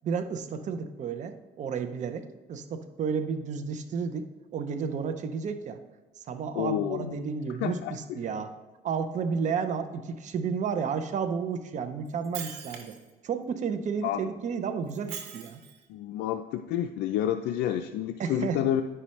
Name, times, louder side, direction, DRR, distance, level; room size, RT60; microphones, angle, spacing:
voice 1, 0.0-5.8 6.3-8.5 8.8-13.0 13.2-15.6 18.2-18.6, right 6 dB, 45° right, 8 dB, 0.6 m, -32 dB
voice 2, 6.5-7.1 7.6-8.2 14.0-14.3 15.9-18.8, left 11 dB, 80° left, 6 dB, 0.4 m, -29 dB
Shatter, 12.1-13.1 14.9-15.8, right 8 dB, 90° right, 1.2 m, -41 dB
9.8 x 5.6 x 3.1 m, 1.2 s
cardioid pair, 110°, 17 cm